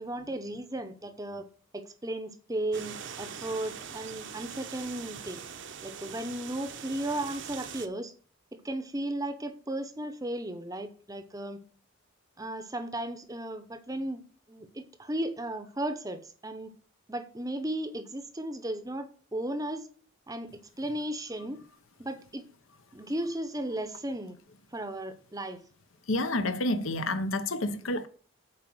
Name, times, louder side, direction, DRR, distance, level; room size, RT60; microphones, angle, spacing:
voice 1, 0.0-1.4 1.7-5.4 5.8-8.1 8.5-11.6 12.4-16.7 17.1-19.9 20.3-21.6 22.0-22.5 22.9-24.4 24.7-25.6, right 1 dB, 15° right, 0.7 m, -35 dB
sound 1, 2.7-7.9, right 7 dB, 55° right, 0.8 m, -42 dB
voice 2, 26.1-28.1, left 2 dB, 65° left, 0.8 m, -29 dB
7.7 x 4.8 x 6.1 m
head